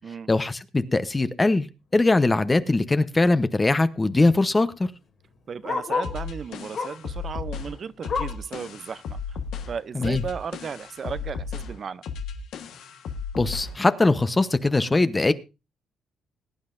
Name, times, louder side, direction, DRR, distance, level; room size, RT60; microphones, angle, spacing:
voice 1, 0.3-1.7 1.9-4.9 9.9-10.2 13.4-15.3, left 2 dB, 20° left, 0.8 m, -21 dB
Bark, 3.1-3.2 3.4-6.2 6.7-7.1 7.5-8.5 9.0-9.1 9.5-9.6 10.2-10.3, left 4 dB, 55° left, 2.6 m, -32 dB
voice 2, 5.5-9.4 9.7-12.0, right 6 dB, 50° right, 0.6 m, -35 dB
sound 1, 6.0-13.8, left 5 dB, 80° left, 1.3 m, -35 dB
20.5 x 9.5 x 2.6 m
cardioid pair, 90°, 0 cm